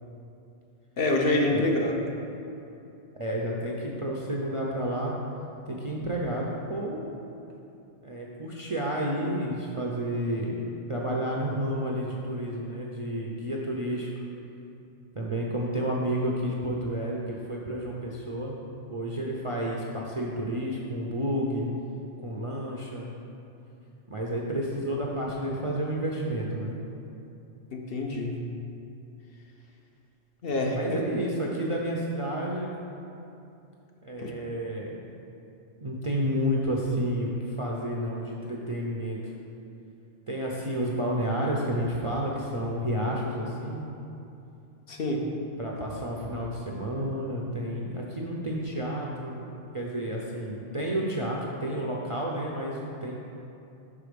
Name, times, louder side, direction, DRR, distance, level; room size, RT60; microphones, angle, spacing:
voice 1, 1.0-2.0 27.7-28.4 30.4-31.0 34.2-34.3 44.9-45.2, left 2 dB, 55° left, 0 dB, 0.8 m, -26 dB
voice 2, 3.2-5.2 5.7-7.1 8.0-10.6 10.9-14.1 15.1-18.6 18.9-21.7 22.2-23.1 24.1-26.7 30.7-32.7 34.0-35.0 35.8-39.2 40.3-43.9 45.6-53.1, equal, 40° right, -3 dB, 0.5 m, -30 dB
6.8 x 4.8 x 5.1 m, 2.8 s
omnidirectional pair, 1.3 m